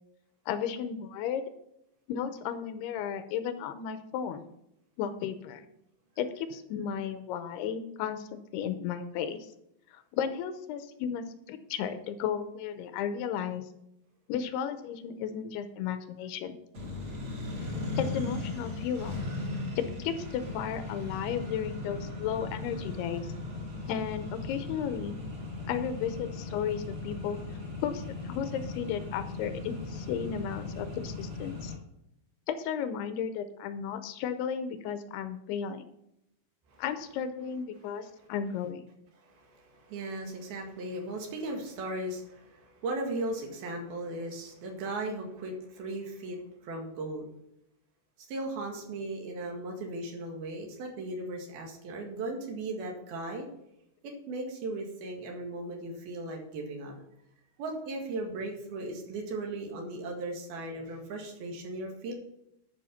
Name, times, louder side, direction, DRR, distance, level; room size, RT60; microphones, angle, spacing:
voice 1, 0.5-1.4 2.1-4.5 5.0-5.7 6.2-9.5 9.9-13.7 14.3-16.6 18.0-19.2 19.8-23.3 23.9-25.2 25.7-27.4 27.8-31.7 32.5-35.9 36.8-38.8, left 8 dB, 90° left, 10 dB, 2.8 m, -34 dB
Accelerating revving vroom, 16.7-31.7, left 3 dB, 35° right, 2.9 m, -38 dB
voice 2, 39.2-47.3 48.3-53.5 54.0-57.0 57.6-62.1, right 2 dB, 70° right, 1 dB, 3.6 m, -37 dB
11.5 x 5.7 x 5.7 m, 0.82 s
omnidirectional pair, 4.6 m